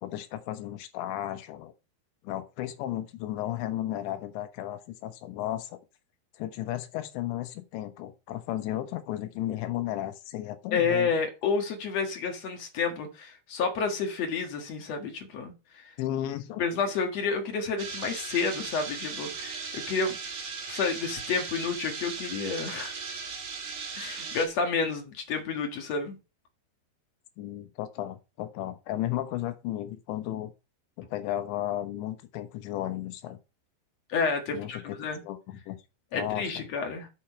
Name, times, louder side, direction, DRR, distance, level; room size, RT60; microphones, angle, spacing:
voice 1, 0.0-1.7 2.2-5.8 6.4-11.1 16.0-16.6 27.4-30.5 31.0-33.4 34.5-35.0 35.2-35.8 36.1-36.6, left 13 dB, 85° left, 3.4 m, -34 dB
voice 2, 10.7-15.9 16.6-20.2 20.7-22.9 24.0-26.2 34.1-35.2 36.1-37.1, left 5 dB, 55° left, 2.1 m, -30 dB
sound 1, 17.8-24.5, right 5 dB, 65° right, 4.3 m, -38 dB
8.2 x 7.2 x 4.5 m
omnidirectional pair, 5.0 m